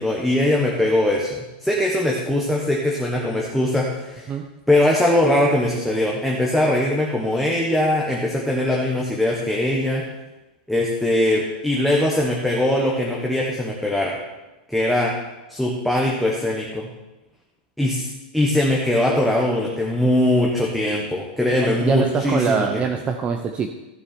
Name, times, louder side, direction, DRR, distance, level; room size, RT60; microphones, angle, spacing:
voice 1, 0.0-4.3 4.7-10.0 10.7-14.2 14.7-15.1 15.5-16.9 17.8-18.1 18.3-22.8, left 1 dB, ahead, -3 dB, 1.3 m, -21 dB
voice 2, 21.6-23.7, right 6 dB, 25° right, 5 dB, 0.7 m, -23 dB
14.0 x 6.6 x 4.3 m, 1.0 s
supercardioid pair, 140°, 5 cm